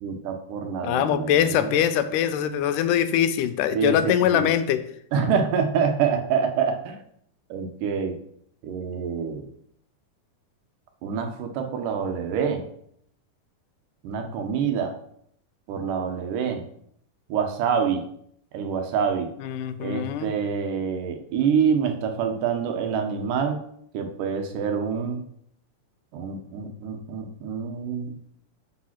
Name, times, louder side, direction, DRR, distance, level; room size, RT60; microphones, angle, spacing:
voice 1, 0.0-1.7 3.7-4.5 5.1-7.0 7.5-8.2 8.6-9.5 11.0-12.6 14.0-15.0 15.7-16.6 17.3-18.0 18.5-19.3 19.8-23.6 23.9-25.2 26.1-28.2, right 6 dB, 85° right, 5 dB, 2.6 m, -26 dB
voice 2, 0.8-4.8 19.4-20.3, left 9 dB, 90° left, 11 dB, 2.2 m, -23 dB
6.4 x 5.4 x 5.8 m, 0.69 s
omnidirectional pair, 3.7 m